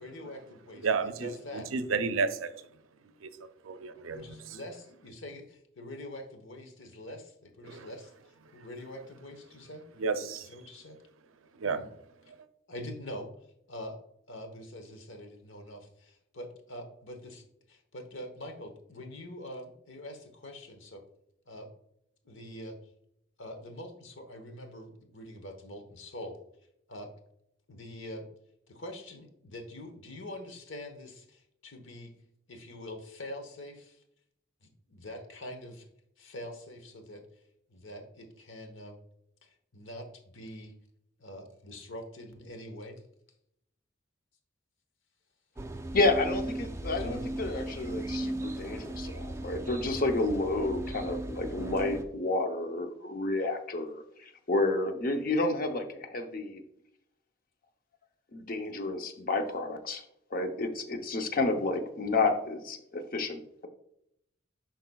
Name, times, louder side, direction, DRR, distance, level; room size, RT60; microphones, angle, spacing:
voice 1, 0.0-0.9 1.2-1.7 4.1-8.1 8.5-9.8 10.4-11.0 11.6-11.9 12.7-13.3 13.7-14.0 14.3-21.0 21.5-21.7 22.2-22.8 23.4-26.4 26.9-27.1 27.7-28.3 28.7-32.1 32.5-34.0 34.6-35.9 36.2-37.2 37.7-39.0 39.4-40.7 41.2-43.0 47.0-47.2, left 1 dB, 75° left, 1.1 m, -44 dB
voice 2, 0.8-2.6 3.2-3.3 3.6-4.4 7.6-7.9 10.0-10.5 11.6-11.9 12.3-12.4, right 5 dB, 85° right, 0.5 m, -32 dB
sound 1, 45.6-52.0, right 1 dB, 15° right, 0.3 m, -37 dB
voice 3, 45.9-56.6 58.3-60.0 60.3-63.7, left 2 dB, 45° left, 0.7 m, -30 dB
10.5 x 4.1 x 2.3 m
head